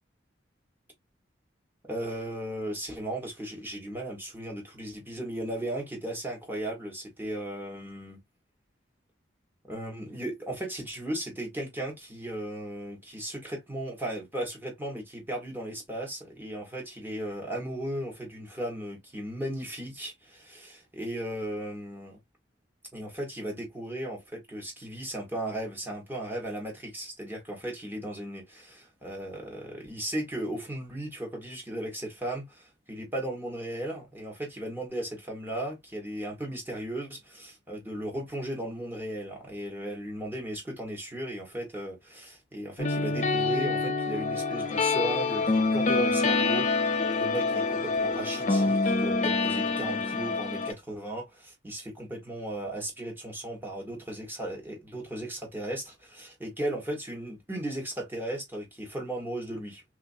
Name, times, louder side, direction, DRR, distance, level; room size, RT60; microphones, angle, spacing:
voice 1, 1.9-8.2 9.6-22.2 22.9-59.8, right 1 dB, 10° right, 1.2 m, -36 dB
sound 1, 42.8-50.7, left 3 dB, 40° left, 0.8 m, -26 dB
3.6 x 2.8 x 2.6 m
head